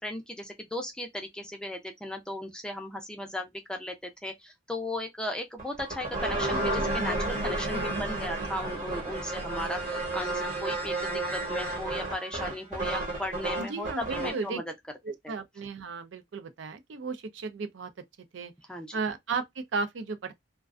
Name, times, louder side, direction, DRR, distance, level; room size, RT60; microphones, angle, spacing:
voice 1, 0.0-14.7 15.2-15.3 18.7-19.0, left 1 dB, 5° left, 0.4 m, -36 dB
sound 1, 5.6-14.5, right 2 dB, 40° right, 1.0 m, -32 dB
voice 2, 13.6-14.6 15.0-17.9 18.3-18.5 18.9-20.3, right 4 dB, 65° right, 0.4 m, -35 dB
2.4 x 2.2 x 2.3 m
head